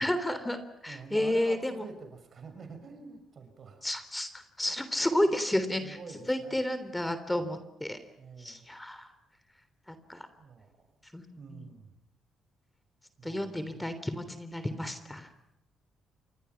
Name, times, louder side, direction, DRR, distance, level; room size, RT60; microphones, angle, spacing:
voice 1, 0.0-1.8 3.8-6.0 6.3-8.0 8.4-9.1 9.9-10.3 11.1-11.2 11.5-11.6 13.2-15.3, left 1 dB, 10° left, 11 dB, 3.4 m, -31 dB
voice 2, 0.9-3.8 4.7-4.8 5.3-5.4 5.8-6.6 8.2-8.6 10.4-11.0 11.4-12.0 13.2-14.0, right 5 dB, 50° right, 7 dB, 6.5 m, -47 dB
29.5 x 24.5 x 6.0 m, 0.84 s
supercardioid pair, 60°, 0 cm